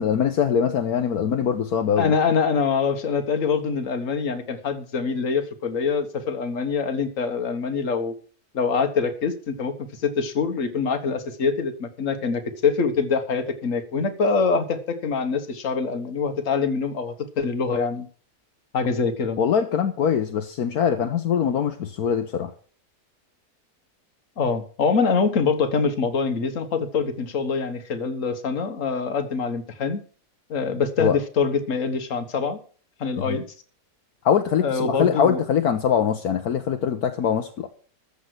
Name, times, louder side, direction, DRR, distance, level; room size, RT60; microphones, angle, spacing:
voice 1, 0.0-2.1 19.4-22.5 31.0-31.2 33.2-33.4 34.2-37.7, left 8 dB, 70° left, 6 dB, 1.4 m, -22 dB
voice 2, 2.0-8.1 8.5-18.1 18.7-19.4 24.4-30.0 30.5-32.6 33.0-33.4 34.6-35.4, left 5 dB, 55° left, 8 dB, 1.7 m, -24 dB
14.0 x 6.6 x 6.4 m, 0.42 s
omnidirectional pair, 1.7 m